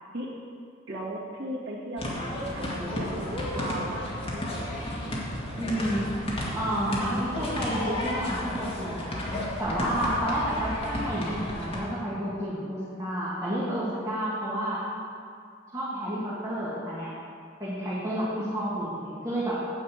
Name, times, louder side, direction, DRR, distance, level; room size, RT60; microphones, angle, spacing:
voice 1, 0.9-5.0 18.4-18.9 19.2-19.3, right 1 dB, 70° right, -6 dB, 2.0 m, -37 dB
sound 1, 2.0-11.8, left 1 dB, 30° left, 2.0 m, -33 dB
voice 2, 5.6-6.1 6.5-9.2 9.6-14.8 15.7-17.1 17.6-19.5, right 1 dB, 20° right, -10 dB, 2.0 m, -30 dB
9.3 x 5.5 x 8.1 m, 2.3 s
head